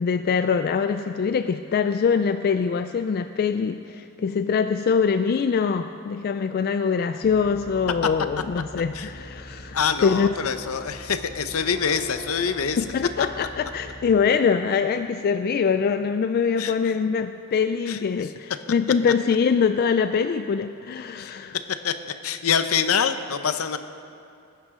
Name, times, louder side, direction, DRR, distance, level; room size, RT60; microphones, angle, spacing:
voice 1, 0.0-10.3 12.8-21.6, left 6 dB, 45° left, 9 dB, 0.3 m, -23 dB
sound 1, 7.2-14.1, equal, 25° left, 1.9 m, -42 dB
voice 2, 9.7-12.8 16.6-16.7 17.9-18.0 21.2-21.3 21.8-21.9 22.2-23.8, left 7 dB, 75° left, 10 dB, 0.7 m, -25 dB
19.5 x 10.5 x 3.7 m, 2.6 s
head